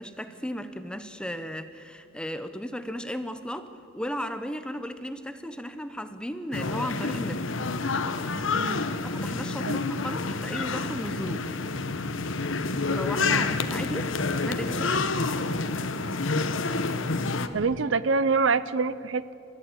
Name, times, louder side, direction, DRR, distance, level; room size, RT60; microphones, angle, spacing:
voice 1, 0.0-7.4 9.0-11.5 12.9-14.2 14.4-15.3, equal, 5° left, 10 dB, 0.9 m, -35 dB
sound 1, 6.5-17.5, left 3 dB, 70° left, 1.1 m, -28 dB
voice 2, 8.5-8.9 9.7-9.9 13.2-13.4 17.5-19.3, right 4 dB, 65° right, 16 dB, 0.6 m, -26 dB
29.0 x 14.0 x 8.8 m, 2.7 s
head